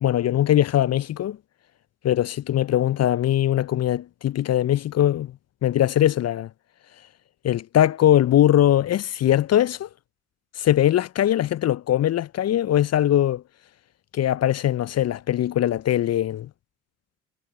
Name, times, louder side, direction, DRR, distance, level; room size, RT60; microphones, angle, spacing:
voice 1, 0.0-1.4 2.0-5.3 5.6-6.5 7.4-9.9 10.6-13.4 14.1-16.5, left 12 dB, 35° left, 0.7 m, -21 dB
figure-of-eight pair, 50°, 43 cm